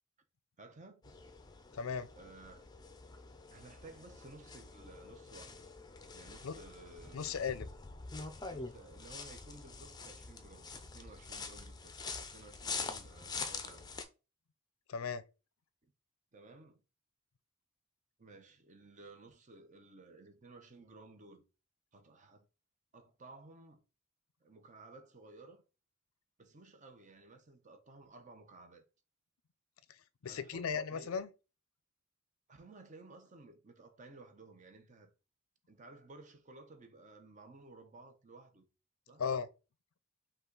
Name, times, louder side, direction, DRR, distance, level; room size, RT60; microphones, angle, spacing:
voice 1, 0.6-1.1 2.1-2.6 3.5-5.7 6.1-7.3 8.5-11.9 12.3-13.9 15.8-15.9 16.3-16.8 18.2-21.4 21.9-22.4 22.9-23.8 24.4-25.6 26.4-28.8 30.2-31.2 32.5-35.1 35.7-38.7 39.1-39.2, right 2 dB, 35° right, 0.7 m, -56 dB
sound 1, 1.0-14.0, left 4 dB, 20° left, 0.5 m, -46 dB
voice 2, 1.7-2.1 6.4-6.5 7.1-7.7 14.9-15.2 30.2-31.3 39.2-39.5, left 6 dB, 75° left, 0.5 m, -36 dB
5.5 x 2.4 x 3.8 m
head